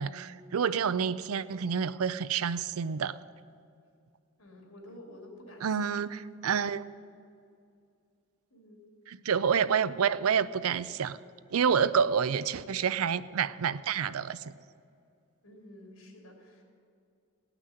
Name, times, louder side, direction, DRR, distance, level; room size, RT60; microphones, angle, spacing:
voice 1, 0.0-3.2 5.6-6.8 9.1-11.2 11.5-14.5, right 7 dB, 85° right, 16 dB, 0.5 m, -28 dB
voice 2, 4.4-5.8 8.5-8.8 15.4-16.6, left 1 dB, 85° left, 2 dB, 3.0 m, -50 dB
17.5 x 6.0 x 9.7 m, 2.4 s
head